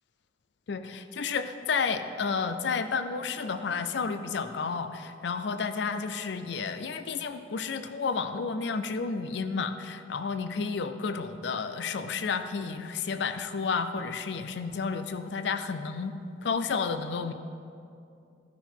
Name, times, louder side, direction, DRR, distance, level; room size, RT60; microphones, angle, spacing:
voice 1, 0.7-16.1 16.4-17.3, left 5 dB, 70° left, 9 dB, 0.5 m, -31 dB
13.5 x 5.5 x 4.5 m, 2.5 s
head